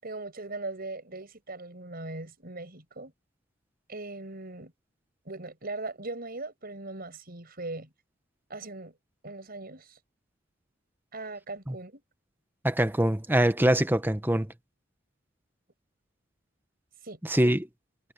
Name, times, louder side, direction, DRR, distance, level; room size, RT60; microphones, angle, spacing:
voice 1, 0.0-3.1 3.9-4.7 5.3-7.9 8.5-8.9 9.2-10.0 11.1-12.0 17.0-17.2, right 2 dB, 50° right, 7.1 m, -39 dB
voice 2, 12.6-14.5 17.2-17.7, right 1 dB, 10° right, 1.1 m, -24 dB
head